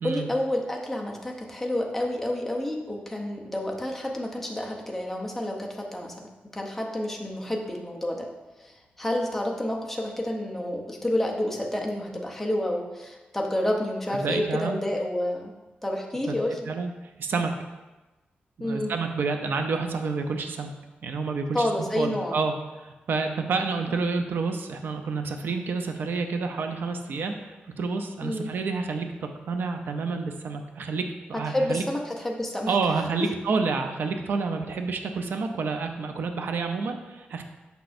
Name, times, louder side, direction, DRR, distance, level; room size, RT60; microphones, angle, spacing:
voice 1, 0.0-8.3 8.6-15.5 15.8-16.6 18.6-19.0 21.5-22.4 28.2-28.5 31.3-32.7, left 1 dB, 5° left, 0 dB, 0.7 m, -29 dB
voice 2, 14.1-14.8 16.3-16.4 16.7-16.9 17.2-17.5 18.6-20.7 21.0-22.5 22.8-31.0 31.3-31.8 32.7-37.4, right 4 dB, 70° right, 5 dB, 0.5 m, -29 dB
6.8 x 6.0 x 2.6 m, 1.1 s
wide cardioid pair, 155°, 4 cm